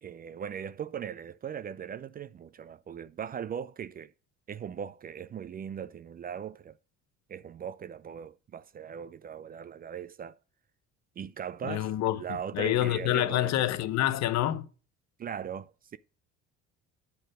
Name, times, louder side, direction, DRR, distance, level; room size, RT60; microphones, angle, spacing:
voice 1, 0.0-4.1 4.5-6.8 7.3-10.3 11.2-13.7 15.2-16.0, right 8 dB, 30° right, 0.4 m, -39 dB
voice 2, 11.6-12.2 12.5-14.7, left 13 dB, 65° left, 0.8 m, -27 dB
8.2 x 4.4 x 4.8 m
cardioid pair, 95°, 29 cm